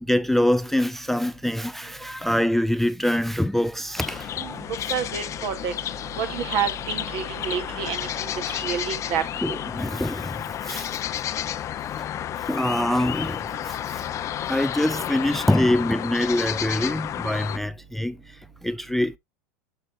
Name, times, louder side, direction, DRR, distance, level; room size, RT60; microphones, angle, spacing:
voice 1, 0.0-4.9 8.7-8.8 9.4-10.9 12.4-14.0 14.5-19.2, left 1 dB, 5° left, 0.4 m, -25 dB
sound 1, 4.0-17.6, left 11 dB, 35° left, 0.7 m, -31 dB
voice 2, 4.9-5.7 6.2-9.5, right 7 dB, 55° right, 2.4 m, -29 dB
9.2 x 6.4 x 2.6 m
supercardioid pair, 110°, 9 cm